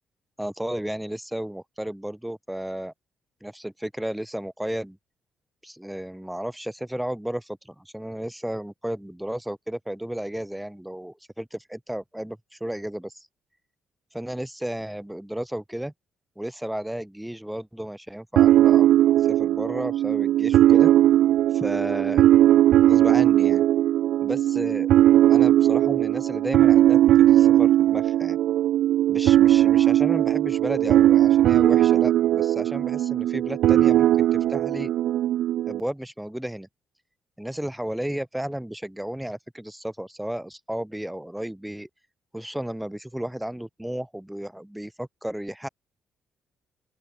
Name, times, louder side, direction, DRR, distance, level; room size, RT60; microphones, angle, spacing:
voice 1, 0.4-2.9 3.4-5.0 5.6-13.3 14.1-15.9 16.4-18.9 19.1-20.9 21.5-22.3 22.8-23.6 24.2-27.0 27.3-28.4 29.1-34.9 35.7-36.7 37.4-41.9 42.3-45.7, right 1 dB, 5° right, 3.9 m, -33 dB
sound 1, 18.4-35.8, right 12 dB, 80° right, 0.5 m, -19 dB
open air
cardioid pair, 90°, 0 cm